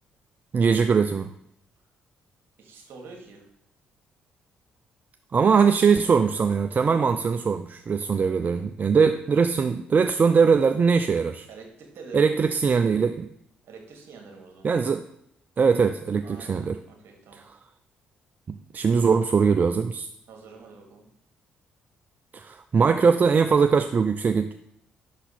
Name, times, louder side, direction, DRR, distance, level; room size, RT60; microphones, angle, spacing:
voice 1, 0.5-1.3 5.3-11.5 12.1-13.3 14.6-15.0 15.6-16.8 17.3-17.4 18.5-20.1 22.3-24.5, right 5 dB, 40° right, 8 dB, 0.3 m, -21 dB
voice 2, 2.6-3.5 11.5-12.5 13.7-14.7 16.2-16.6 16.9-17.4 20.3-21.1, right 4 dB, 65° right, 2 dB, 1.5 m, -45 dB
5.5 x 4.1 x 4.1 m, 0.76 s
hypercardioid pair, 50°, 4 cm